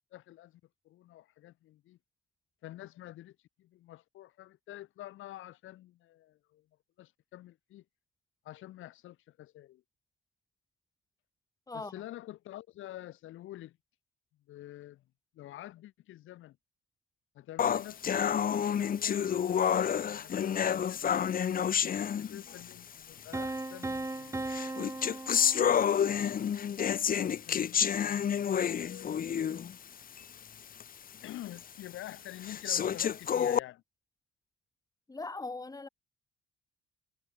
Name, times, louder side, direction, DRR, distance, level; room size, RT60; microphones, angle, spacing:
voice 1, 0.1-0.6 0.9-2.0 2.6-6.7 7.0-7.8 8.4-9.8 11.7-13.8 14.5-15.0 15.3-16.6 17.3-21.0 21.6-24.8 26.1-29.7 31.2-33.8, left 14 dB, 85° left, 3.6 m, -48 dB
voice 2, 11.7-12.0 35.1-35.9, left 3 dB, 20° left, 2.3 m, -40 dB
sound 1, 17.6-22.7 23.6-23.7 24.5-29.7 30.2-30.3 30.8-30.9 31.6-31.7 32.4-33.6, left 8 dB, 45° left, 0.9 m, -29 dB
Piano, 23.3-26.2, right 2 dB, 15° right, 2.2 m, -38 dB
cardioid pair, 90°, 20 cm